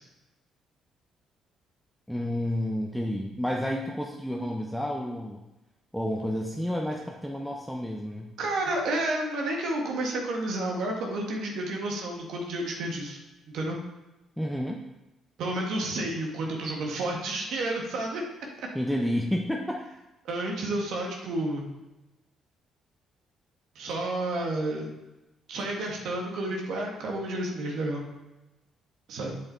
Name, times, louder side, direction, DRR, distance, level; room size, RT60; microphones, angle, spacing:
voice 1, 2.1-5.4 5.9-8.3 14.4-14.8 18.7-19.8, equal, ahead, 0 dB, 1.1 m, -30 dB
voice 2, 8.4-13.2 13.5-13.8 15.4-18.2 18.6-18.7 20.2-21.6 23.7-24.9 25.5-28.0 29.1-29.4, right 1 dB, 70° right, 0 dB, 1.9 m, -30 dB
8.0 x 7.1 x 4.1 m, 1.0 s
hypercardioid pair, 50°, 0 cm